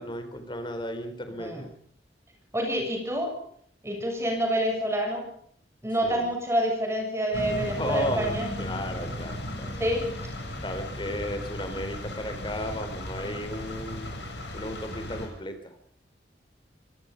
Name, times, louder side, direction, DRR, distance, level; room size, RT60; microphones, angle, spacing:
voice 1, 0.0-1.7 6.0-6.3 7.8-9.7 10.6-14.2 14.5-15.7, left 1 dB, 30° left, 8 dB, 4.1 m, -34 dB
voice 2, 2.5-3.3 3.8-5.3 5.8-8.5 9.8-10.1, equal, 15° right, 2 dB, 7.1 m, -27 dB
sound 1, 7.3-15.3, left 1 dB, 75° left, 7.2 m, -36 dB
25.5 x 19.5 x 5.4 m, 0.63 s
head